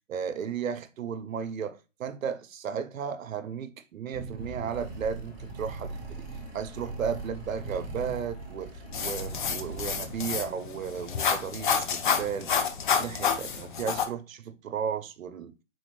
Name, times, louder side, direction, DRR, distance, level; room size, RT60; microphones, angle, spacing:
voice 1, 0.1-6.3 6.5-12.5 13.0-15.5, right 7 dB, 85° right, 0.6 m, -34 dB
sound 1, 4.1-10.2, right 3 dB, 35° right, 1.3 m, -41 dB
sound 2, 4.4-10.2, left 1 dB, 65° left, 2.0 m, -46 dB
sound 3, 8.9-14.1, left 7 dB, 40° left, 0.4 m, -29 dB
4.1 x 2.4 x 3.1 m
hypercardioid pair, 145°, 39 cm